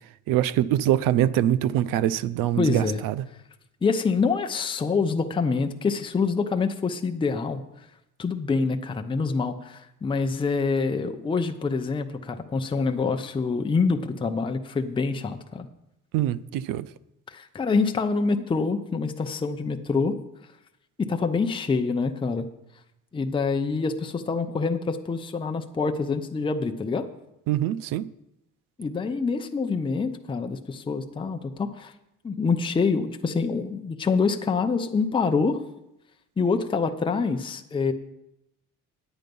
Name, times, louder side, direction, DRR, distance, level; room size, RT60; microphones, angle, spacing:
voice 1, 0.3-3.2 16.1-16.9 27.5-28.1, right 12 dB, 85° right, 0.5 m, -24 dB
voice 2, 2.6-3.0 3.8-7.6 8.2-15.7 17.3-20.1 21.0-22.5 23.1-27.1 28.8-31.9 32.2-35.6 36.4-37.9, left 4 dB, 15° left, 0.6 m, -26 dB
9.0 x 9.0 x 5.3 m
cardioid pair, 125°, 32 cm